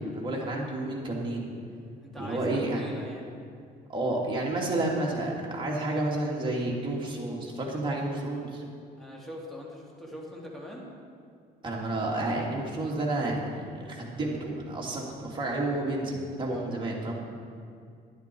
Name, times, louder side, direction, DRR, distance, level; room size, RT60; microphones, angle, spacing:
voice 1, 0.1-1.5 2.2-2.8 3.9-8.6 11.6-17.1, right 2 dB, 30° right, -3 dB, 2.6 m, -30 dB
voice 2, 2.0-3.3 9.0-10.9, left 1 dB, ahead, -4 dB, 2.6 m, -42 dB
11.5 x 10.5 x 4.6 m, 2.4 s
cardioid pair, 110°, 17 cm